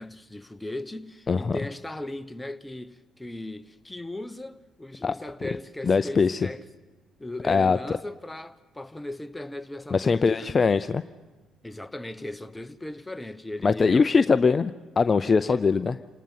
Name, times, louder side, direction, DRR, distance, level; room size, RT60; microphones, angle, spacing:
voice 1, 0.0-6.6 7.2-10.5 11.6-14.3 15.5-15.6, left 1 dB, 10° left, 1.1 m, -37 dB
voice 2, 1.3-1.6 5.0-5.1 5.8-6.5 7.4-8.0 9.9-11.0 13.6-16.0, left 5 dB, 40° left, 0.6 m, -22 dB
28.5 x 19.0 x 5.6 m
hypercardioid pair, 55°, 0 cm